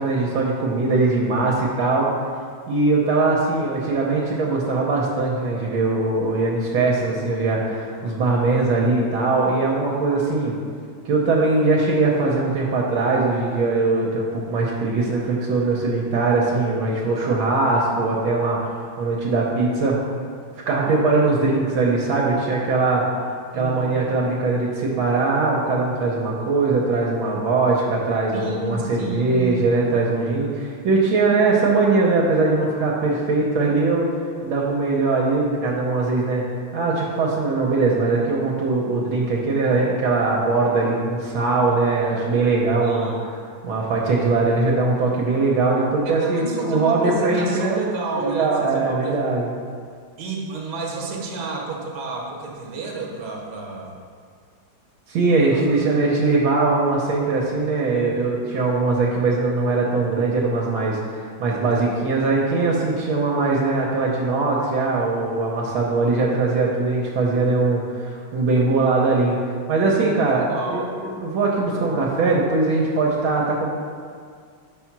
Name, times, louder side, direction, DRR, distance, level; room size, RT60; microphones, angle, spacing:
voice 1, 0.0-2.1 2.7-10.6 11.0-20.0 20.7-23.0 23.5-34.1 34.4-36.5 36.7-47.8 48.2-49.5 55.1-69.4 69.7-73.7, right 3 dB, 75° right, -3 dB, 1.5 m, -21 dB
voice 2, 23.5-24.0 28.3-29.7 42.8-43.2 46.0-49.2 50.2-54.0 55.5-55.8 70.0-70.9, right 3 dB, 60° right, -1 dB, 1.5 m, -30 dB
5.5 x 4.3 x 5.9 m, 2.1 s
omnidirectional pair, 2.3 m